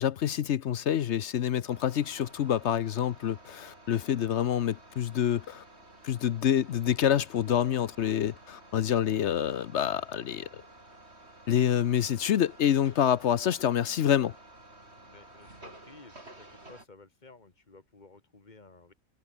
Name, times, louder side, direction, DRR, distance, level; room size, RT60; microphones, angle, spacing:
voice 1, 0.0-5.6 6.0-10.6 11.5-14.3, left 10 dB, 60° left, 0.8 m, -27 dB
sound 1, 1.7-16.9, right 2 dB, 40° right, 5.9 m, -53 dB
voice 2, 15.0-18.9, left 3 dB, 30° left, 2.8 m, -54 dB
omnidirectional pair, 1.6 m